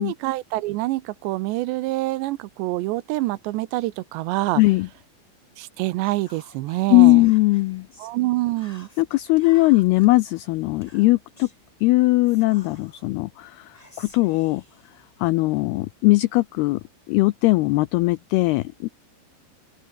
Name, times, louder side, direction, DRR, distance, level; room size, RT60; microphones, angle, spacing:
voice 1, 0.0-4.6 5.6-7.3 8.0-8.9, right 18 dB, 80° right, 2.9 m, -26 dB
voice 2, 4.6-4.9 6.9-7.9 9.0-11.5 11.8-13.7 14.0-14.6 15.2-16.8 17.1-18.9, left 20 dB, 85° left, 2.2 m, -19 dB
Whispering, 6.0-8.2 8.6-10.1 10.8-11.6 12.2-13.1 13.7-15.6, left 1 dB, 10° left, 3.6 m, -51 dB
open air
omnidirectional pair, 5.2 m